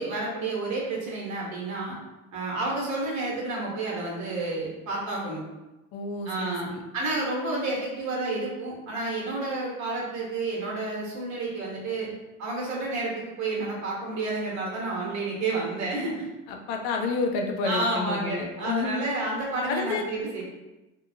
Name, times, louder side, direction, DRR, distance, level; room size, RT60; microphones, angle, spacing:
voice 1, 0.0-2.0 2.3-5.4 6.2-12.1 12.4-16.3 17.6-20.4, right 2 dB, 45° right, -3 dB, 1.0 m, -30 dB
voice 2, 5.9-6.8 16.5-19.1 19.7-20.0, left 4 dB, 60° left, 2 dB, 0.6 m, -30 dB
2.9 x 2.2 x 2.6 m, 1.0 s
hypercardioid pair, 75°, 40 cm